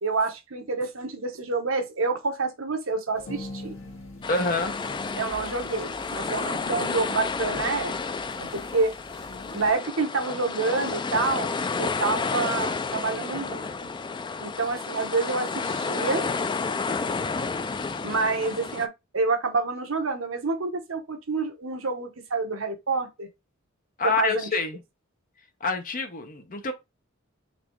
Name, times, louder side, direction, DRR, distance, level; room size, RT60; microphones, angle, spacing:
voice 1, 0.0-3.8 5.2-8.0 8.4-8.9 9.5-11.5 11.8-13.9 14.4-16.3 18.0-23.3 24.0-24.5, right 3 dB, 70° right, 1.0 m, -28 dB
sound 1, 3.1-9.7, left 2 dB, 65° left, 1.9 m, -43 dB
sound 2, 4.2-18.9, left 4 dB, 20° left, 0.3 m, -31 dB
voice 2, 4.3-4.8 24.0-24.8 25.6-26.7, left 3 dB, 40° left, 0.9 m, -27 dB
4.2 x 2.7 x 4.4 m
head